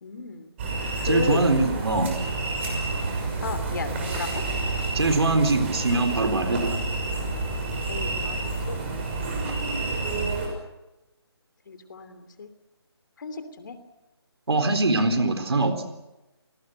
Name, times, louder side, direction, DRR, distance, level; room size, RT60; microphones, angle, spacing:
voice 1, 0.0-0.6 1.0-1.5 3.4-4.3 7.9-8.8 11.7-12.5 13.2-13.8, left 5 dB, 45° left, 10 dB, 3.0 m, -34 dB
sound 1, 0.6-10.5, right 3 dB, 25° right, 6.1 m, -29 dB
voice 2, 1.0-2.1 4.9-6.8 14.5-15.8, right 2 dB, 65° right, 8 dB, 4.1 m, -22 dB
29.0 x 18.5 x 7.9 m, 1.0 s
figure-of-eight pair, 160°, 14 cm